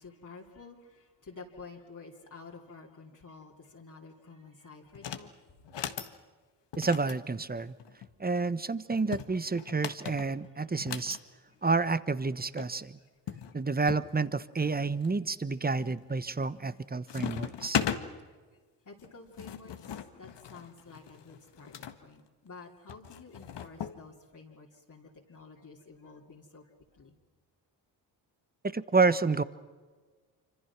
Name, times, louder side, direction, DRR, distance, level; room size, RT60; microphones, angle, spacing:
voice 1, 0.0-5.4 11.5-11.6 13.0-13.1 18.2-18.3 18.8-26.7 26.9-27.1, left 4 dB, 40° left, -2 dB, 3.1 m, -51 dB
sound 1, 4.9-5.3 5.6-6.1 6.7-8.1 8.9-11.2 12.3-12.4 12.6-12.7 13.3-14.1 14.6-15.1 15.7-16.1 16.4-16.8 17.1-18.0 19.0-22.0 22.9-24.0, left 8 dB, 60° left, 1.7 m, -37 dB
voice 2, 6.8-7.7 8.2-11.2 11.6-13.0 13.5-17.8 28.7-29.4, right 4 dB, 20° right, 15 dB, 1.1 m, -29 dB
26.0 x 25.5 x 6.1 m, 1.4 s
supercardioid pair, 50°, 47 cm